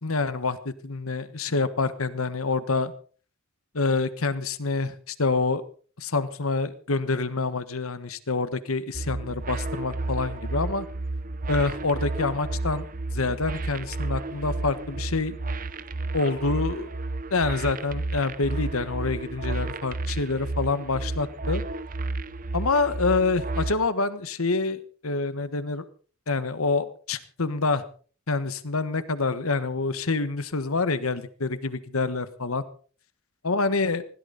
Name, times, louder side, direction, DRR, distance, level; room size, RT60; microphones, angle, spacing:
voice 1, 0.0-2.9 3.7-5.6 6.0-10.8 11.5-12.8 13.1-15.3 16.1-16.9 17.3-21.6 22.5-25.8 26.3-27.8 28.3-32.6 33.4-34.0, left 3 dB, 85° left, 13 dB, 1.4 m, -27 dB
sound 1, 8.9-23.7, right 2 dB, 40° right, 0.9 m, -32 dB
20.0 x 17.0 x 4.1 m, 0.42 s
head